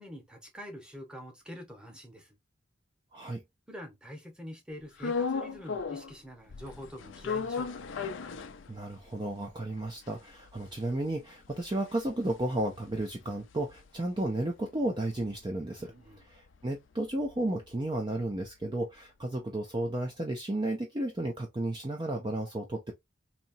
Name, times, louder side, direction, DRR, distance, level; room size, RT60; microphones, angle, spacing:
voice 1, 0.0-2.4 3.7-7.7 15.8-16.3, equal, 5° right, 1.0 m, -45 dB
voice 2, 3.1-3.4 8.7-22.9, right 1 dB, 25° right, 0.5 m, -33 dB
sound 1, 5.0-6.2 6.5-9.1 9.5-9.6 9.8-14.3 14.6-18.6, left 5 dB, 80° left, 0.5 m, -38 dB
4.1 x 2.8 x 2.7 m
head